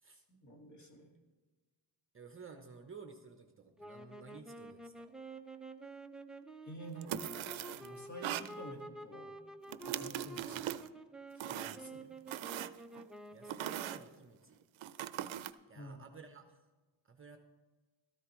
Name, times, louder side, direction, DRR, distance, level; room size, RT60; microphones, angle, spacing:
voice 1, 0.3-1.1 6.6-7.3 7.8-9.3 9.9-10.6 11.5-12.1 15.7-16.0, right 1 dB, 35° left, 1 dB, 2.1 m, -49 dB
voice 2, 2.1-5.1 10.4-10.8 13.3-14.6 15.2-16.6 17.0-17.4, right 5 dB, 25° right, 5 dB, 0.8 m, -54 dB
sound 1, 3.8-14.1, right 2 dB, ahead, 0.4 m, -50 dB
sound 2, 7.0-7.9 8.2-8.5 9.7-10.9 11.4-11.9 12.3-13.1 13.5-14.0 14.8-15.5, right 12 dB, 80° right, 0.6 m, -40 dB
14.0 x 13.0 x 3.1 m, 1.3 s
cardioid pair, 135°, 46 cm